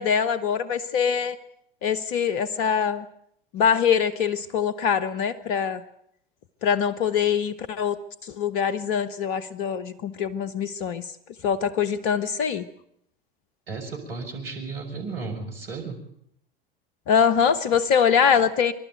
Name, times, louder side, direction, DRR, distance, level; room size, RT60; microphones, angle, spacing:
voice 1, 0.0-1.4 1.8-3.0 3.5-5.8 6.6-8.0 8.2-11.1 11.4-12.6 17.1-18.7, left 7 dB, 50° left, 15 dB, 1.0 m, -23 dB
voice 2, 13.7-16.0, right 4 dB, 75° right, 2 dB, 5.7 m, -34 dB
25.5 x 12.0 x 9.2 m, 0.74 s
figure-of-eight pair, 80°, 29 cm